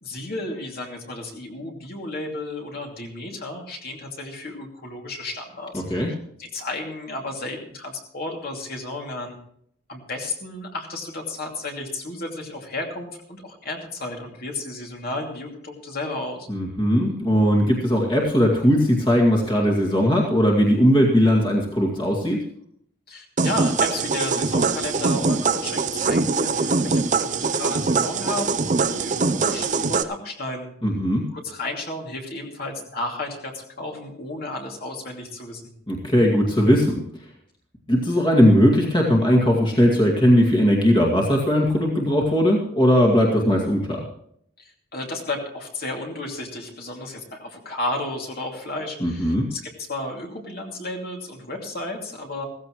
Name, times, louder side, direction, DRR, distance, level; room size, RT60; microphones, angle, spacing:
voice 1, 0.0-6.0 6.4-9.4 9.9-16.5 23.1-30.7 31.3-35.7 44.6-52.4, left 2 dB, 45° left, 1 dB, 2.7 m, -33 dB
voice 2, 5.7-6.1 16.5-22.4 30.8-31.2 35.9-37.0 37.9-44.0 49.0-49.5, equal, 25° left, -1 dB, 2.2 m, -19 dB
sound 1, 23.4-30.0, right 4 dB, 35° right, 0.6 m, -23 dB
16.0 x 15.0 x 3.2 m, 0.67 s
head